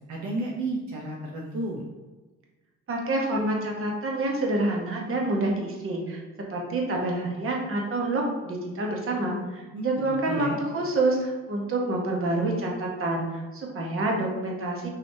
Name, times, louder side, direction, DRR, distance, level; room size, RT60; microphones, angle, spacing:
voice 1, 0.1-1.8 9.7-9.9 10.3-10.6, right 2 dB, 70° right, -3 dB, 0.7 m, -32 dB
voice 2, 2.9-6.2 6.5-14.9, right 2 dB, 45° right, 0 dB, 1.0 m, -27 dB
4.0 x 3.2 x 2.7 m, 1.2 s
cardioid pair, 90°, 30 cm